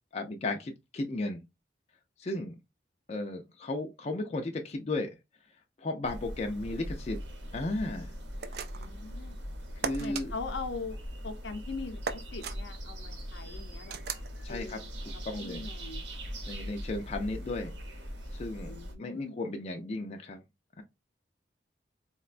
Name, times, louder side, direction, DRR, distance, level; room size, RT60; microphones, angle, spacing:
voice 1, 0.1-1.4 2.2-2.5 3.1-5.1 5.8-7.2 7.5-8.1 9.8-10.3 14.4-14.8 15.3-15.6 16.5-17.7 18.3-18.7 19.0-20.4 20.8-20.9, left 2 dB, 35° left, 0.4 m, -34 dB
sound 1, 6.0-18.9, equal, 70° right, 0.8 m, -41 dB
sound 2, 8.4-9.0 9.8-10.3 12.0-12.6 13.9-14.3, right 6 dB, 55° right, 0.3 m, -36 dB
voice 2, 8.7-9.4 10.0-12.0 12.3-14.9 15.4-16.0 18.7-19.6, left 4 dB, 75° left, 0.6 m, -41 dB
3.9 x 2.1 x 2.4 m
head